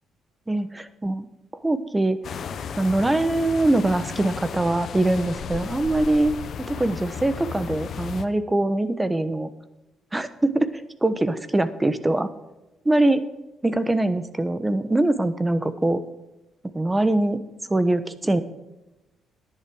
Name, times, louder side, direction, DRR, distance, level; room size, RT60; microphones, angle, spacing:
voice 1, 0.5-1.3 1.6-2.2 2.8-9.5 10.1-12.3 12.8-13.2 13.6-16.0 16.7-17.4 17.7-18.4, right 2 dB, 15° right, 13 dB, 1.0 m, -23 dB
sound 1, 2.2-8.2, left 7 dB, 60° left, 1.0 m, -34 dB
11.0 x 10.5 x 4.9 m, 1.0 s
cardioid pair, 90°, 0 cm